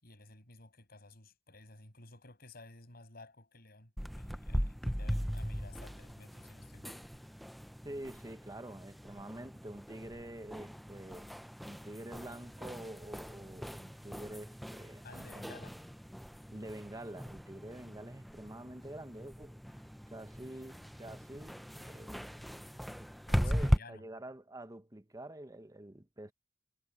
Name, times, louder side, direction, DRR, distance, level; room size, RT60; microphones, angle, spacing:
voice 1, 0.0-7.0 15.0-15.8 23.3-24.0, left 3 dB, 55° left, 7.1 m, -54 dB
sound 1, 4.0-23.8, equal, ahead, 0.6 m, -39 dB
voice 2, 7.8-11.3 11.6-15.6 16.5-19.8 20.1-22.5 22.8-23.1 23.3-26.3, right 1 dB, 20° right, 1.0 m, -47 dB
head